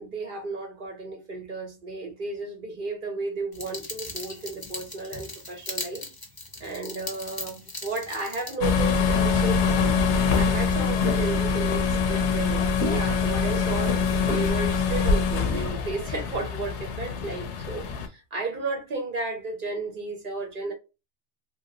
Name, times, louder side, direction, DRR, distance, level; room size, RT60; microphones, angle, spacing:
voice 1, 0.0-6.0 6.6-9.9 10.4-14.0 14.3-20.7, right 3 dB, 50° right, 0.8 m, -33 dB
sound 1, 3.5-8.5, left 2 dB, 25° left, 0.6 m, -38 dB
sound 2, 8.6-18.1, left 5 dB, 75° left, 0.9 m, -24 dB
2.9 x 2.5 x 2.8 m
omnidirectional pair, 1.2 m